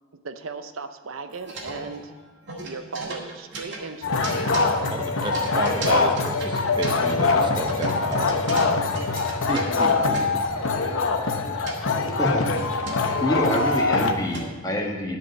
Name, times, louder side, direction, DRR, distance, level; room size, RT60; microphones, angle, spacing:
voice 1, 0.2-2.2 2.6-4.7 5.9-6.1, right 4 dB, 85° right, 9 dB, 0.7 m, -37 dB
sound 1, 1.3-2.2 2.4-7.2 7.7-10.5 11.3-11.8 12.2-14.7, right 2 dB, 60° right, 1.9 m, -35 dB
sound 2, 4.0-14.1, left 3 dB, 85° left, 0.9 m, -23 dB
voice 2, 4.9-8.4 9.5-10.2, right 1 dB, 25° right, 4 dB, 0.8 m, -31 dB
voice 3, 13.2-15.2, equal, 20° left, -1 dB, 1.5 m, -26 dB
11.0 x 5.0 x 8.4 m, 1.5 s
head